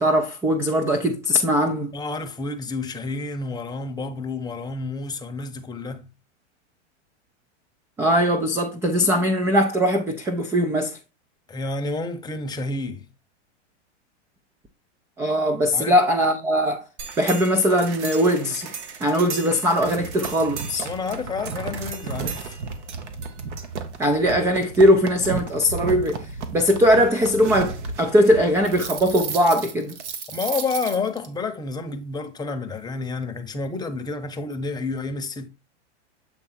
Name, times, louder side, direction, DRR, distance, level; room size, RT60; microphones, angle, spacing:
voice 1, 0.0-1.9 8.0-11.0 15.2-16.9 17.2-18.7 19.0-20.9 24.0-30.0, equal, 10° right, 0.3 m, -20 dB
voice 2, 1.9-6.1 11.5-13.1 15.7-15.9 20.8-22.6 30.3-35.5, left 3 dB, 10° left, 0.8 m, -30 dB
sound 1, 17.0-31.3, right 5 dB, 75° right, 1.4 m, -33 dB
7.9 x 3.5 x 4.2 m
hypercardioid pair, 125°, 36 cm